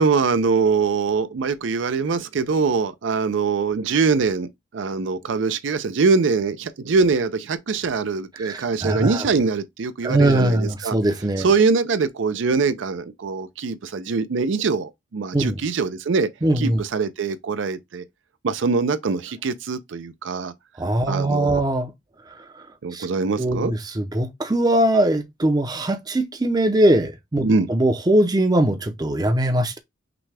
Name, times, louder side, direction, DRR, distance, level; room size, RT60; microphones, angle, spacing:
voice 1, 0.0-4.5 4.7-11.0 11.4-16.3 16.6-18.0 18.4-20.5 21.1-21.6 22.8-23.7 27.4-27.7, right 4 dB, 70° right, 0.5 m, -23 dB
voice 2, 8.4-9.3 10.0-11.5 15.3-15.5 16.4-16.8 20.8-21.9 22.9-23.1 23.4-29.8, right 1 dB, 20° right, 0.5 m, -21 dB
6.0 x 2.2 x 3.3 m
head